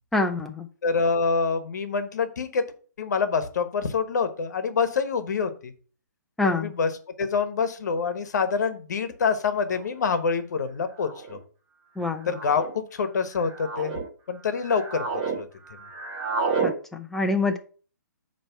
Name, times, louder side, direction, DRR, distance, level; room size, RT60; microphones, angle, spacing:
voice 1, 0.1-0.7 6.4-6.7 12.0-12.3 16.6-17.6, left 2 dB, 5° left, 4 dB, 0.6 m, -26 dB
voice 2, 0.8-2.6 3.0-5.7 6.4-6.9 7.2-11.4 12.3-14.0 14.3-15.0 15.4-15.5, left 5 dB, 65° left, 10 dB, 1.1 m, -26 dB
sound 1, 8.7-8.8 9.8-10.1 11.0-11.4 12.2-12.7 13.3-14.0 14.5-15.4 15.6-16.7, right 4 dB, 25° right, 1.2 m, -30 dB
8.9 x 3.1 x 5.6 m, 0.41 s
hypercardioid pair, 145°, 10 cm